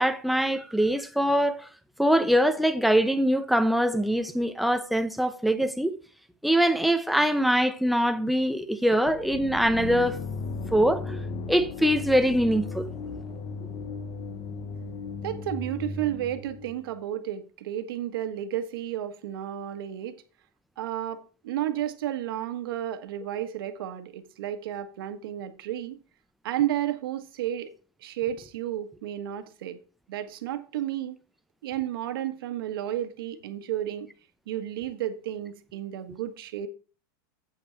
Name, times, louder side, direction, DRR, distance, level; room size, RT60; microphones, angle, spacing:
voice 1, 0.0-1.7 2.0-5.9 6.4-10.2 10.7-11.2 11.5-12.9, equal, ahead, 0.7 m, -23 dB
sound 1, 9.1-16.9, left 4 dB, 35° left, 1.1 m, -36 dB
voice 2, 15.2-20.2 20.8-26.0 26.4-27.7 28.0-29.8 30.1-31.2 31.6-34.1 34.5-36.7, right 11 dB, 75° right, 1.5 m, -32 dB
8.3 x 8.1 x 4.6 m
supercardioid pair, 150°, 12 cm